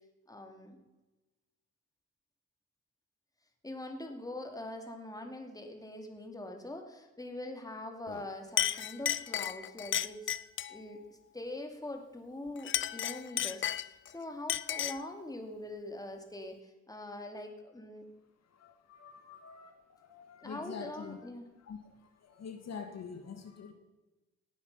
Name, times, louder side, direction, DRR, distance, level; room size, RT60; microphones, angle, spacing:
voice 1, 0.3-0.8 3.6-10.4 10.7-18.1 20.4-21.5, left 1 dB, 10° left, 4 dB, 2.7 m, -43 dB
Chink clink, 8.1-8.3 8.6-10.8 12.6-14.1 14.5-15.1, left 10 dB, 40° left, 0.5 m, -33 dB
voice 2, 18.5-21.3 21.6-23.7, left 6 dB, 60° left, 6 dB, 1.9 m, -46 dB
18.0 x 10.0 x 5.6 m, 1.1 s
cardioid pair, 90°, 30 cm